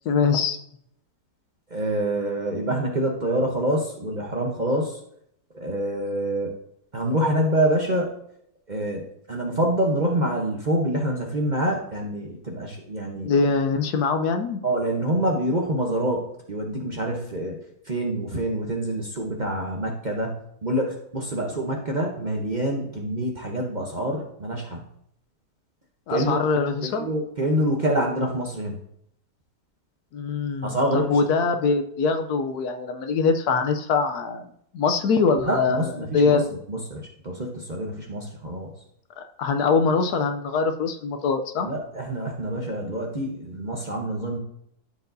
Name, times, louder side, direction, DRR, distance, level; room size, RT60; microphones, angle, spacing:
voice 1, 0.1-0.6 13.2-14.6 26.1-27.1 30.1-34.5 34.7-36.5 39.4-41.7, left 4 dB, 75° left, 7 dB, 1.2 m, -23 dB
voice 2, 1.7-5.0 5.5-6.5 6.9-8.2 8.7-13.3 14.6-17.5 17.9-20.3 20.6-24.8 26.1-26.4 26.8-28.8 30.6-31.2 35.4-36.4 36.7-38.7 41.6-44.4, right 1 dB, 35° right, 0 dB, 0.8 m, -26 dB
13.0 x 4.7 x 2.6 m, 0.72 s
omnidirectional pair, 1.8 m